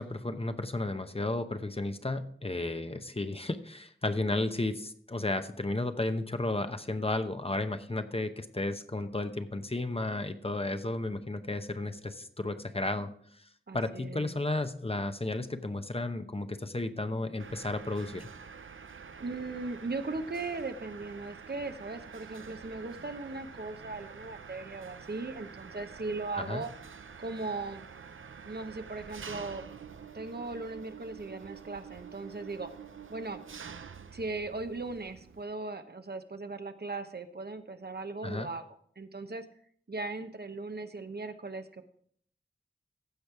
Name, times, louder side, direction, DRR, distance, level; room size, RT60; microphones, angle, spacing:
voice 1, 0.0-13.1 13.7-18.3 26.4-26.6 38.2-38.5, left 2 dB, 30° left, 9 dB, 0.8 m, -33 dB
voice 2, 13.7-14.4 19.2-26.7 27.2-27.8 28.5-29.6 30.1-32.7 33.1-33.4 34.1-39.4 39.9-41.8, right 3 dB, 55° right, 8 dB, 0.9 m, -38 dB
Mechanisms, 17.4-35.4, right 6 dB, 90° right, 0.6 m, -48 dB
15.0 x 5.2 x 4.7 m, 0.63 s
wide cardioid pair, 45°, 20 cm